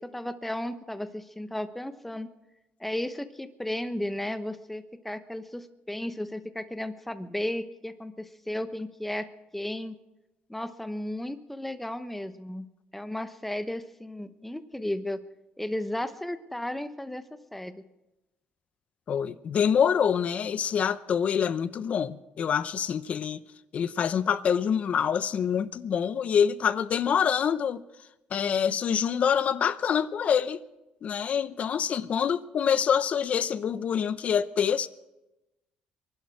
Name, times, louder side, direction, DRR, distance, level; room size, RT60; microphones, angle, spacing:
voice 1, 0.0-2.3 2.8-9.3 9.5-10.0 10.5-12.7 12.9-15.2 15.6-17.8, left 1 dB, 5° left, 1.0 m, -34 dB
voice 2, 19.1-23.4 23.7-27.8 28.3-30.6 31.0-34.9, left 7 dB, 50° left, 0.7 m, -26 dB
24.5 x 11.5 x 4.9 m
cardioid pair, 120°, 3 cm